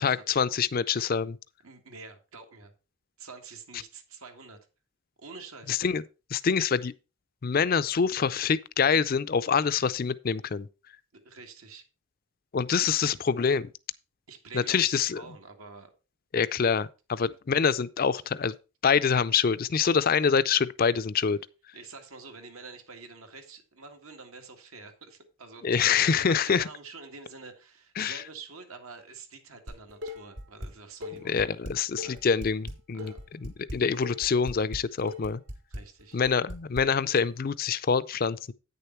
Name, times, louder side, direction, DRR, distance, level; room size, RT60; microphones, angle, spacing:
voice 1, 0.0-1.4 5.7-6.0 6.3-6.9 7.4-10.7 12.5-13.7 14.5-15.2 16.3-18.5 18.8-21.4 25.6-26.7 28.0-28.2 31.2-35.4 36.1-38.5, left 6 dB, 45° left, 0.4 m, -25 dB
voice 2, 1.6-2.7 3.2-4.6 5.2-5.8 11.1-11.9 14.3-15.9 21.7-31.4 32.0-32.2 32.9-33.2 35.7-36.2, right 4 dB, 80° right, 1.8 m, -47 dB
Dishes pots and pans, 29.7-30.7 31.0-36.8, left 1 dB, 60° right, 3.1 m, -39 dB
9.2 x 6.8 x 4.4 m
head